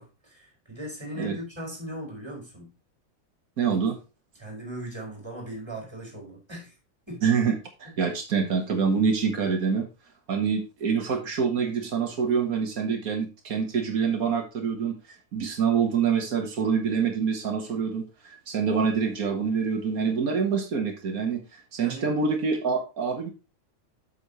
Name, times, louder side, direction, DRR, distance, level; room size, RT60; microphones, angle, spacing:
voice 1, 0.0-2.7 4.4-6.8 7.1-7.2 7.8-7.9 21.8-22.1, right 1 dB, 20° right, -1 dB, 4.6 m, -38 dB
voice 2, 3.6-4.0 7.2-9.9 10.3-15.0 15.3-23.3, right 6 dB, 90° right, 3 dB, 1.9 m, -26 dB
8.1 x 6.3 x 4.2 m, 0.29 s
omnidirectional pair, 1.5 m